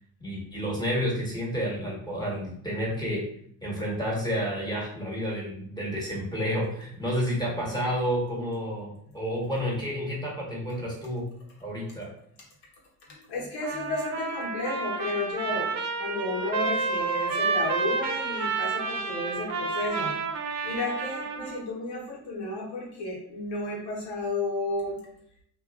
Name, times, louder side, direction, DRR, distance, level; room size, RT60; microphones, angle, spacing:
voice 1, 0.2-3.2 3.6-11.3 11.6-12.1, equal, 10° left, -5 dB, 1.4 m, -30 dB
voice 2, 13.1-20.1 20.6-25.0, left 2 dB, 65° left, -3 dB, 1.2 m, -32 dB
Trumpet, 13.6-21.6, right 4 dB, 40° right, 0.6 m, -30 dB
2.6 x 2.4 x 2.4 m, 0.67 s
supercardioid pair, 65°, 42 cm